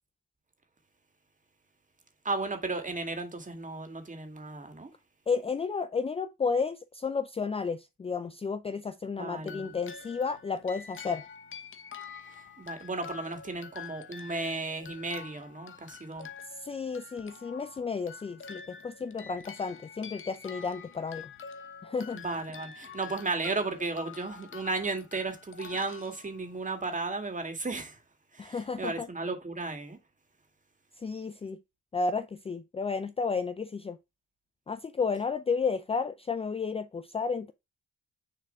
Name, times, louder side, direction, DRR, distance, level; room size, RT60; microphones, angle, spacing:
voice 1, 2.2-4.9 9.1-9.8 12.6-16.3 22.1-28.0 28.3-30.0, right 3 dB, 25° right, 2.1 m, -34 dB
voice 2, 5.3-11.2 16.6-21.3 21.8-22.2 28.4-29.1 31.0-31.6 31.9-34.0 34.7-37.5, left 5 dB, 20° left, 0.4 m, -32 dB
sound 1, 9.4-26.8, left 6 dB, 40° left, 1.1 m, -47 dB
6.6 x 3.7 x 5.5 m
cardioid pair, 90°, 30 cm